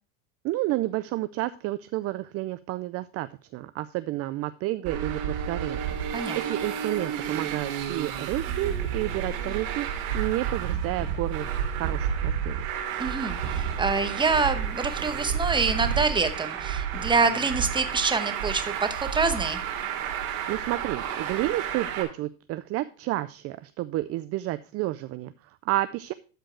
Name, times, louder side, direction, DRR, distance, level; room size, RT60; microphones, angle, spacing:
voice 1, 0.4-6.0 6.3-9.9 10.1-12.7 20.5-26.1, right 16 dB, 40° right, 13 dB, 0.4 m, -30 dB
Traffic noise roadway noise, 4.8-22.0, right 8 dB, 80° right, 2.7 m, -31 dB
voice 2, 13.0-19.6, right 4 dB, 10° right, 9 dB, 1.0 m, -26 dB
12.5 x 4.5 x 4.6 m, 0.37 s
supercardioid pair, 125°, 39 cm